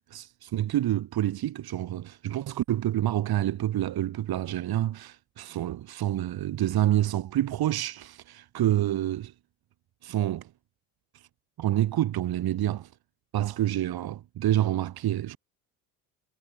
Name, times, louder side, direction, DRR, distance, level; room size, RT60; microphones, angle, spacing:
voice 1, 0.1-9.3 10.0-10.5 11.6-12.9 13.3-15.4, right 13 dB, 60° right, 5.9 m, -28 dB
supercardioid pair, 90°, 41 cm